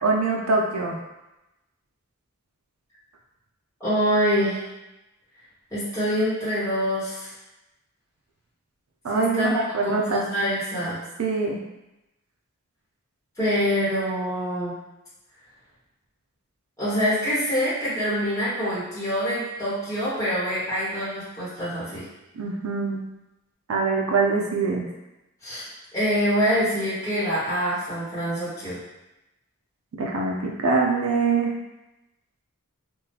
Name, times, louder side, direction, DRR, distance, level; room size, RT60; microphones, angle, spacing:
voice 1, 0.0-1.0 9.0-10.2 11.2-11.6 22.4-23.0 23.7-24.9 30.0-31.5, right 4 dB, 70° right, 0 dB, 0.4 m, -23 dB
voice 2, 3.8-4.6 5.7-7.3 9.1-11.0 13.4-14.8 16.8-22.0 25.4-25.6 25.9-28.8, equal, 15° left, -12 dB, 1.2 m, -25 dB
3.6 x 2.4 x 2.7 m, 0.96 s
head